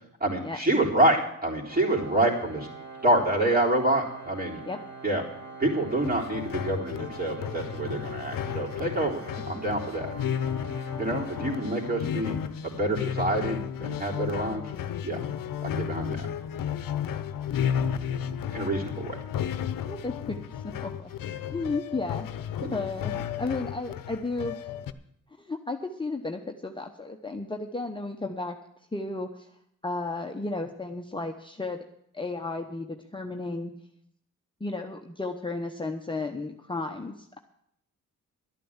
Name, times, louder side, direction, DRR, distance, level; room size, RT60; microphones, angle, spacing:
voice 1, 0.2-2.7 3.0-4.6 5.0-5.2 5.6-10.1 11.0-12.4 12.6-14.6 15.0-15.2 15.6-16.3 18.5-19.2, right 1 dB, 25° right, -2 dB, 3.8 m, -27 dB
Organ, 1.7-12.5, right 3 dB, 60° right, 3.9 m, -43 dB
sound 1, 5.9-24.9, left 9 dB, 85° left, 0.8 m, -33 dB
voice 2, 19.8-21.1 21.5-22.3 22.7-24.6 25.4-28.6 28.9-29.5 29.8-31.8 32.1-33.7 34.6-37.4, left 3 dB, 15° left, 3 dB, 1.0 m, -33 dB
12.0 x 9.2 x 7.3 m, 0.73 s
cardioid pair, 65°, 33 cm